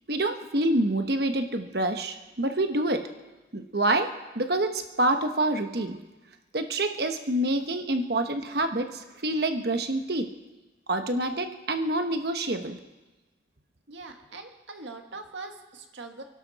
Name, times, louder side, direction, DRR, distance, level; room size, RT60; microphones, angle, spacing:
voice 1, 0.1-3.1 3.5-6.0 6.5-10.3 10.9-12.8, right 1 dB, 55° right, 7 dB, 1.1 m, -27 dB
voice 2, 13.9-16.2, right 3 dB, 75° right, 4 dB, 1.7 m, -42 dB
28.5 x 11.5 x 4.2 m, 1.2 s
head